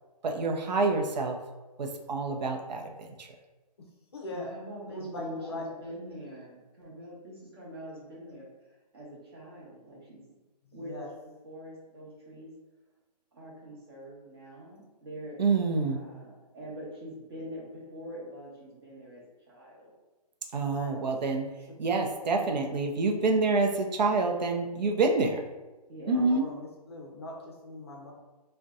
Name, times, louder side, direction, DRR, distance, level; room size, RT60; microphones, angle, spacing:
voice 1, 0.2-1.4 1.8-3.3 15.4-16.0 20.5-21.5 21.8-25.4 26.1-26.5, right 3 dB, 85° right, 3 dB, 0.5 m, -27 dB
voice 2, 3.8-4.5 4.9-5.6 10.6-11.1 20.6-21.0 21.7-21.8 26.1-28.1, left 1 dB, 40° left, 0 dB, 0.5 m, -41 dB
voice 3, 4.3-10.2 10.7-11.0 11.4-12.5 13.3-15.4 15.9-19.9 25.9-26.4, equal, 35° right, -5 dB, 0.9 m, -44 dB
2.6 x 2.2 x 3.5 m, 1.1 s
hypercardioid pair, 175°, 21 cm